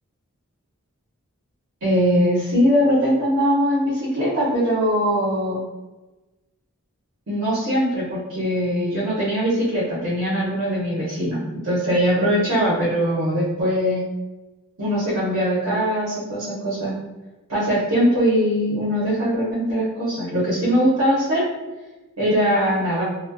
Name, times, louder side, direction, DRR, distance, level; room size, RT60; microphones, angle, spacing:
voice 1, 1.8-5.6 7.3-14.0 14.8-16.9 17.5-21.4 22.2-23.0, equal, 65° right, -8 dB, 0.8 m, -21 dB
2.3 x 2.1 x 2.5 m, 1.1 s
head